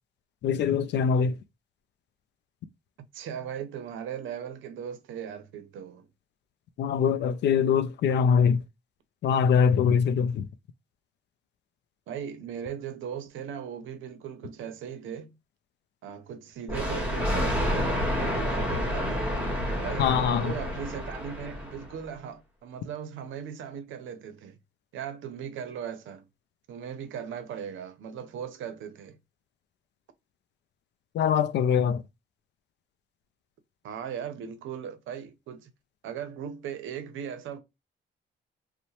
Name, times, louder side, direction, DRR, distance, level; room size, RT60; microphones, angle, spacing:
voice 1, 0.4-1.4 6.8-8.6 9.2-10.5 20.0-20.5 31.1-32.0, left 7 dB, 60° left, 0.4 m, -23 dB
voice 2, 3.1-6.1 12.1-15.3 16.0-19.2 19.8-24.6 24.9-26.3 26.7-29.2 33.8-35.7 36.0-37.6, right 8 dB, 80° right, 0.6 m, -38 dB
Thunder, 16.7-22.0, equal, 10° right, 1.3 m, -29 dB
2.7 x 2.1 x 2.9 m
cardioid pair, 90°, 20 cm